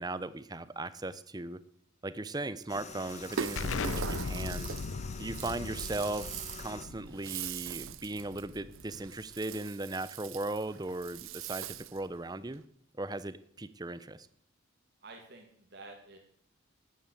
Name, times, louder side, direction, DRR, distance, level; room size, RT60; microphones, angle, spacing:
voice 1, 0.0-1.6 2.0-4.7 5.2-6.3 6.6-12.6 13.0-14.3, right 2 dB, 20° right, 15 dB, 0.6 m, -37 dB
sound 1, 2.7-6.9, left 5 dB, 35° left, 1.4 m, -47 dB
Rattle (instrument), 3.1-12.1, right 8 dB, 75° right, 0.6 m, -42 dB
Explosion, 3.6-8.9, left 4 dB, 75° left, 0.6 m, -38 dB
voice 2, 15.0-16.2, right 2 dB, 55° right, 2 dB, 2.2 m, -50 dB
13.0 x 9.3 x 8.3 m, 0.66 s
head